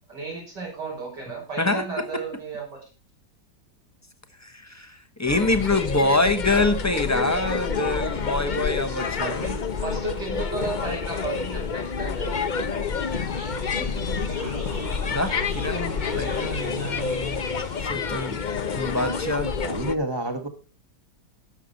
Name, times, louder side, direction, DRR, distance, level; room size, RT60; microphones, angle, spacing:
voice 1, 0.1-2.8 8.9-9.0 9.2-9.5 9.8-12.4, right 4 dB, 65° right, -2 dB, 6.6 m, -33 dB
voice 2, 4.4-9.5 15.0-17.4 17.8-18.4 18.7-19.5, left 2 dB, 10° left, 8 dB, 0.9 m, -25 dB
sound 1, 5.3-19.9, left 5 dB, 55° left, 0.5 m, -28 dB
sound 2, 12.8-17.8, right 1 dB, 50° right, 6.5 m, -38 dB
voice 3, 19.6-20.5, right 1 dB, 15° right, 5 dB, 1.3 m, -28 dB
17.5 x 7.3 x 4.1 m, 0.32 s
omnidirectional pair, 2.0 m